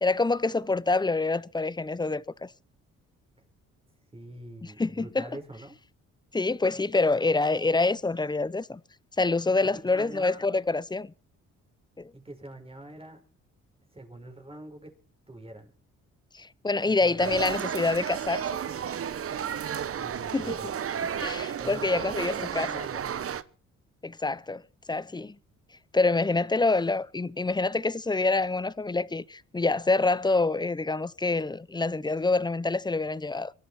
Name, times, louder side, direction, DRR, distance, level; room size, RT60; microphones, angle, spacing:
voice 1, 0.0-2.5 4.8-5.3 6.3-8.8 9.2-11.1 12.0-12.1 16.3-18.5 20.3-20.6 21.2-22.7 24.0-24.6 24.9-25.4 25.9-33.5, left 3 dB, 15° left, 0.7 m, -26 dB
voice 2, 4.1-5.8 9.9-10.4 12.1-13.2 13.9-14.9 15.3-15.7 16.9-17.5 19.9-20.7 21.6-23.0, right 1 dB, 20° right, 5.5 m, -44 dB
sound 1, 17.2-23.4, right 8 dB, 50° right, 1.1 m, -32 dB
23.5 x 12.5 x 4.4 m
cardioid pair, 90°, 30 cm